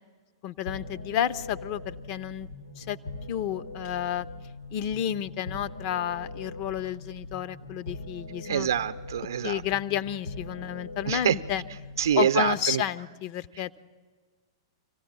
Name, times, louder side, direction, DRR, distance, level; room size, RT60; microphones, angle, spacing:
voice 1, 0.4-2.5 2.8-3.0 3.3-4.3 4.7-8.7 9.4-11.6 12.1-13.8, left 10 dB, 40° left, 14 dB, 0.6 m, -31 dB
sound 1, 0.7-12.7, left 2 dB, 85° left, 2.2 m, -41 dB
voice 2, 8.4-9.6 11.1-11.3 12.0-12.8, right 9 dB, 65° right, 12 dB, 0.6 m, -25 dB
25.5 x 16.0 x 8.8 m, 1.5 s
figure-of-eight pair, 105°, 2 cm